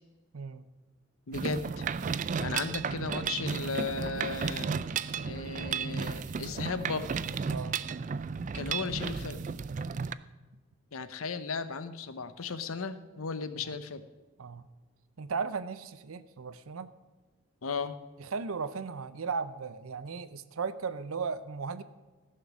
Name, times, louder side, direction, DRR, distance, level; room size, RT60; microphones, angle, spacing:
voice 1, 0.3-0.6 1.3-1.5 7.5-7.8 9.9-10.2 13.6-13.7 14.4-14.6 15.2-16.9 18.2-21.8, right 5 dB, 85° right, 13 dB, 0.6 m, -36 dB
voice 2, 1.3-1.8 2.4-4.7 5.1-7.1 8.5-9.4 10.9-14.0 17.6-18.0, left 4 dB, 85° left, 12 dB, 0.8 m, -35 dB
Mechanisms, 1.3-10.1, right 6 dB, 35° right, 0.3 m, -34 dB
15.0 x 6.6 x 6.2 m, 1.2 s
head